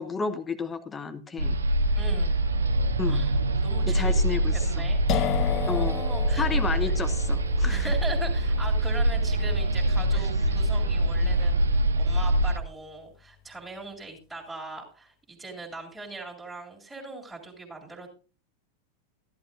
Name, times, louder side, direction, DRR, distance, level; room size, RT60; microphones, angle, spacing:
voice 1, 0.0-1.6 3.0-3.2 3.9-4.8 5.7-6.0 6.4-7.9 10.1-10.3, left 5 dB, 15° left, 9 dB, 1.1 m, -32 dB
sound 1, 1.4-12.6, right 1 dB, 70° right, 0.7 m, -24 dB
voice 2, 1.9-2.4 3.1-3.4 3.6-4.1 4.5-5.0 5.3-6.5 7.7-18.1, right 3 dB, 10° right, -3 dB, 2.8 m, -40 dB
sound 2, 5.1-12.7, left 11 dB, 35° left, 0.4 m, -36 dB
14.0 x 11.5 x 2.6 m, 0.35 s
figure-of-eight pair, 90°, 0 cm